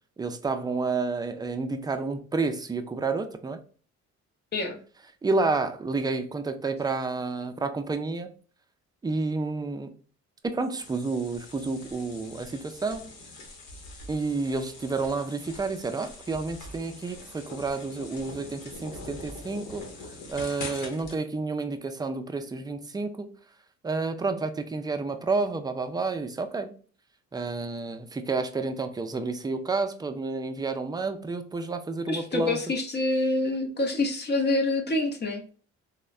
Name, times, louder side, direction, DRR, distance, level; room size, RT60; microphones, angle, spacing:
voice 1, 0.2-3.6 5.2-8.3 9.0-9.9 10.4-13.1 14.1-19.9 20.3-23.3 23.8-26.7 27.3-32.6, right 3 dB, 15° right, 0.3 m, -30 dB
sound 1, 10.8-21.2, left 2 dB, 90° left, 0.9 m, -43 dB
voice 2, 32.1-35.5, left 2 dB, 35° left, 0.6 m, -26 dB
3.2 x 2.1 x 2.3 m
cardioid pair, 90°, 30 cm